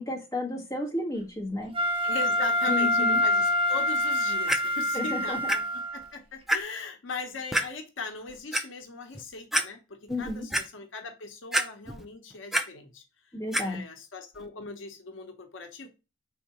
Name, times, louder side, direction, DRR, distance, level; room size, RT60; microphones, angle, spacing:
voice 1, 0.0-1.7 2.7-3.2 4.9-5.5 10.1-10.5 13.3-13.8, left 2 dB, 15° left, -3 dB, 1.4 m, -32 dB
Wind instrument woodwind instrument, 1.7-6.0, left 1 dB, 30° right, 0.8 m, -26 dB
voice 2, 2.0-5.6 5.9-13.0 13.6-15.9, left 4 dB, 80° left, 5 dB, 0.7 m, -39 dB
Clock, 4.5-4.6 5.5-5.6 6.0-6.1 6.5-6.6 7.5-7.7 8.3-8.6 9.1-9.2 9.5-9.6 10.1-10.6 11.5-12.0 12.3-12.6 13.5-13.6 14.4-14.5, right 1 dB, ahead, 0.3 m, -26 dB
4.5 x 3.6 x 2.9 m, 0.30 s
head